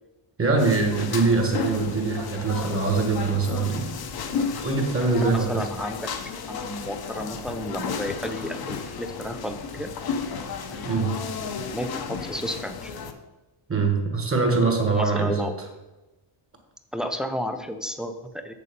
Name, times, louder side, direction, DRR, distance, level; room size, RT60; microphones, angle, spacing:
voice 1, 0.4-4.0 4.3-5.7 10.8-11.1 13.7-15.7, right 4 dB, 25° right, 3 dB, 1.5 m, -23 dB
sound 1, 0.6-13.1, left 6 dB, 50° left, 0.8 m, -33 dB
voice 2, 5.2-6.1 6.5-9.9 10.7-11.1 11.7-12.9 14.9-15.5 16.9-18.5, equal, ahead, 7 dB, 0.4 m, -32 dB
7.7 x 6.8 x 5.2 m, 1.1 s
wide cardioid pair, 160°, 49 cm